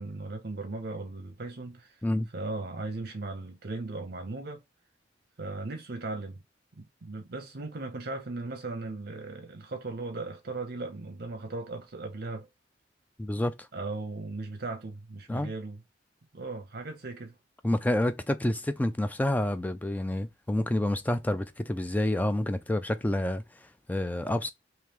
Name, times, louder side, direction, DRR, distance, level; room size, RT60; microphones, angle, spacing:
voice 1, 0.0-2.0 2.3-4.6 5.4-6.4 6.8-12.5 13.7-15.8 16.3-17.4, right 3 dB, 55° right, 0.7 m, -37 dB
voice 2, 13.2-13.6 15.3-15.5 17.6-23.4 23.9-24.5, left 1 dB, 10° left, 0.3 m, -28 dB
3.1 x 2.9 x 3.4 m
head